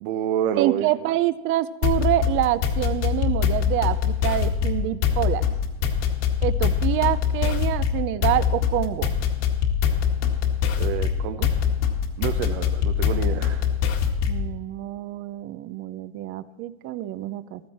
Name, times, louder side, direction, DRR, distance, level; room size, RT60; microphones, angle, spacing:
voice 1, 0.0-0.9 10.8-11.5 12.2-13.6, right 10 dB, 60° right, 6 dB, 1.0 m, -28 dB
voice 2, 0.6-5.4 6.4-9.1 14.3-17.6, right 14 dB, 40° right, 15 dB, 0.6 m, -26 dB
sound 1, 1.8-14.5, left 8 dB, 55° left, 1.9 m, -23 dB
15.0 x 13.0 x 4.3 m, 1.1 s
supercardioid pair, 145°, 34 cm